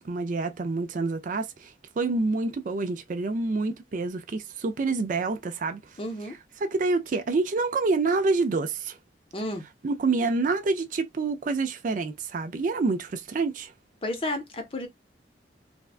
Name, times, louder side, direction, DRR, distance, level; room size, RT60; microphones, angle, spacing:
voice 1, 0.0-6.0 6.6-9.0 9.8-13.7, right 3 dB, 45° right, 0.4 m, -27 dB
voice 2, 6.0-6.4 9.3-9.6 14.0-14.9, left 1 dB, 30° left, 0.7 m, -31 dB
3.4 x 2.2 x 2.4 m
head